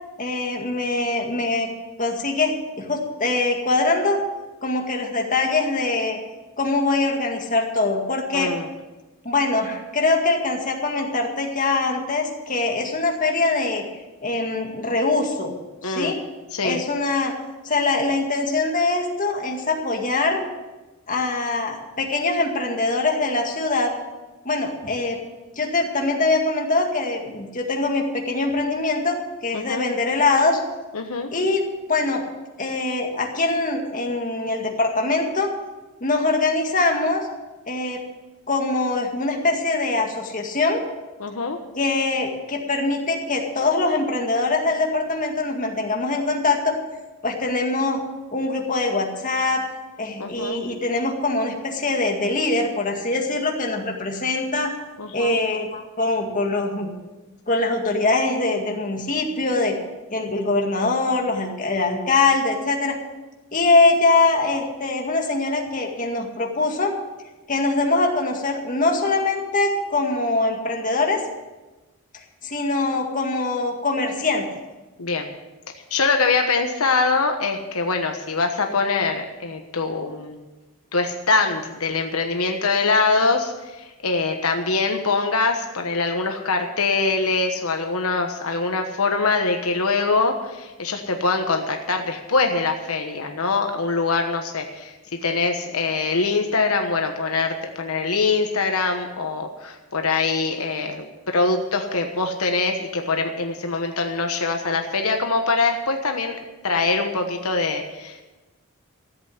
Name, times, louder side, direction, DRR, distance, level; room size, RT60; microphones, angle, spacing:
voice 1, 0.2-1.7 2.0-4.2 4.6-6.2 6.6-8.5 9.2-13.8 14.2-15.5 15.8-16.2 16.6-17.3 17.6-20.4 21.1-23.9 24.5-25.2 25.6-30.6 31.3-31.6 31.9-32.2 32.6-35.5 36.0-37.3 37.7-38.0 38.5-40.8 41.7-46.8 47.2-48.0 48.3-49.6 50.0-54.7 55.1-56.9 57.5-59.8 60.1-63.0 63.5-66.9 67.5-71.2 72.4-74.5, left 3 dB, 35° left, 1 dB, 2.1 m, -23 dB
voice 2, 8.3-8.7 15.8-16.1 16.5-16.8 29.5-29.9 30.9-31.3 41.2-41.6 50.2-50.6 55.0-55.4 75.0-75.3 75.9-80.4 80.9-94.9 95.2-106.4 106.6-108.2, left 4 dB, 85° left, 4 dB, 1.2 m, -23 dB
14.0 x 8.2 x 8.0 m, 1.1 s
head